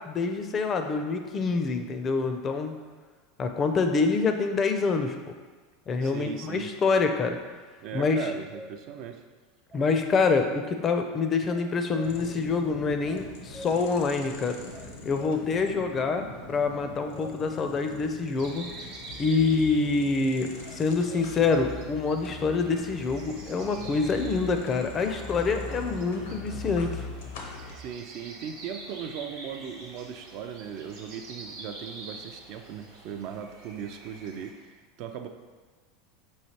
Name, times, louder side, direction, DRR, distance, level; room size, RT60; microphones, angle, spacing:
voice 1, 0.0-2.7 3.4-5.3 5.9-7.4 7.9-8.2 9.7-14.6 15.0-18.6 19.2-26.9, left 4 dB, 35° left, 6 dB, 0.4 m, -26 dB
voice 2, 6.0-6.7 7.8-9.2 27.8-35.3, right 8 dB, 60° right, 6 dB, 0.3 m, -38 dB
sound 1, 8.1-8.8 9.7-10.3 11.5-12.2 13.1-13.8 14.7-15.4 16.7-17.3 20.6-21.3, equal, 40° right, 0.7 m, -45 dB
sound 2, 12.0-27.8, left 2 dB, 80° left, 0.6 m, -42 dB
sound 3, 18.4-34.5, right 2 dB, 75° right, 0.9 m, -47 dB
4.5 x 3.1 x 2.8 m, 1.4 s
hypercardioid pair, 100°, 0 cm